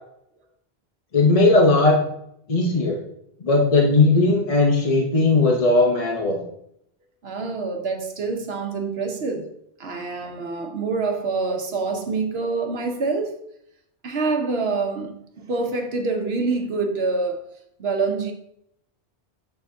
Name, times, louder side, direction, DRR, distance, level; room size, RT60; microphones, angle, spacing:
voice 1, 1.1-2.0 2.5-3.0 3.4-6.4, left 3 dB, 35° left, 0.9 m, -17 dB
voice 2, 7.2-9.5 9.8-13.3 14.0-17.5 17.8-18.3, right 4 dB, 75° right, 1.2 m, -26 dB
7.9 x 6.6 x 2.7 m
omnidirectional pair, 1.1 m